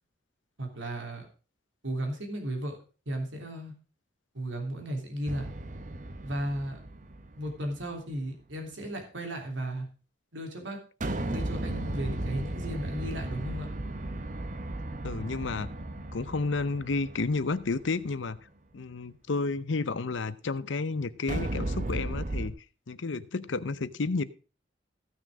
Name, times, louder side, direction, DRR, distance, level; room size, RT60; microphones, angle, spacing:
voice 1, 0.6-1.3 1.8-2.8 3.0-3.7 4.3-5.5 6.2-6.8 7.3-9.9 10.3-10.8 11.3-13.7, right 1 dB, 85° right, 3 dB, 3.3 m, -35 dB
sound 1, 5.3-7.8 11.0-18.2 21.3-22.5, right 1 dB, 40° right, 0.9 m, -35 dB
voice 2, 15.0-15.7 16.1-18.4 18.7-22.5 22.9-24.2, left 3 dB, 85° left, 16 dB, 0.7 m, -31 dB
15.5 x 6.3 x 4.9 m, 0.35 s
head